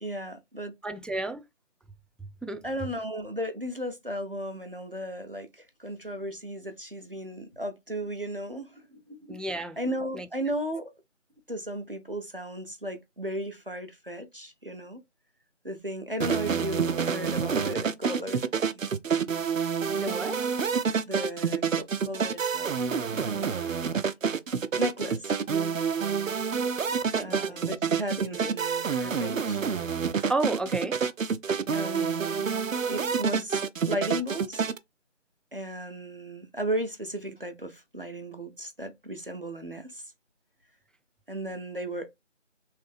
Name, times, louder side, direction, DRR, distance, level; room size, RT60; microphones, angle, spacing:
voice 1, 0.0-0.7 2.6-9.4 9.8-10.9 11.5-15.0 15.6-18.8 21.0-22.7 23.1-24.1 24.8-25.4 27.2-29.6 31.7-32.5 32.9-34.6 35.5-40.1 41.3-42.1, equal, 45° right, 0.6 m, -35 dB
voice 2, 0.8-1.4 2.4-2.6 9.3-9.8 10.1-10.3 20.0-20.4 27.1-27.6 28.4-28.5 30.3-31.0, right 2 dB, ahead, 0.3 m, -32 dB
sound 1, 16.2-34.8, right 6 dB, 90° right, 0.5 m, -28 dB
3.2 x 2.8 x 3.2 m
figure-of-eight pair, 180°, 38 cm